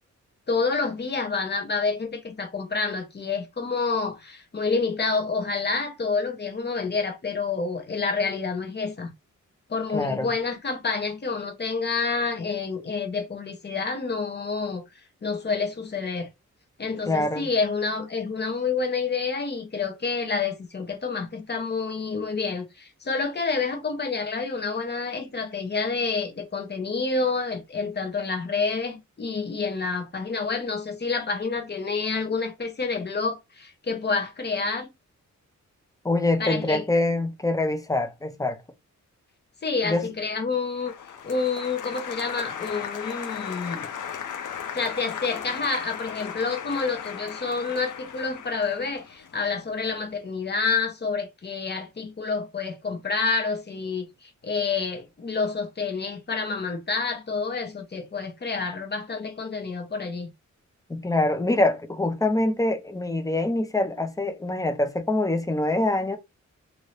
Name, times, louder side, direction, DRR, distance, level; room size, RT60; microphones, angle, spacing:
voice 1, 0.5-9.1 9.7-14.8 15.2-16.3 16.8-34.9 36.4-36.8 39.6-40.9 41.2-43.9 44.7-60.3, left 4 dB, 35° left, 0.9 m, -28 dB
voice 2, 9.9-10.3 17.1-17.5 36.0-38.6 39.8-40.1 60.9-66.2, left 2 dB, 10° left, 0.5 m, -25 dB
Applause, 40.8-49.9, left 8 dB, 90° left, 0.7 m, -36 dB
2.7 x 2.7 x 3.1 m
wide cardioid pair, 170°, 30 cm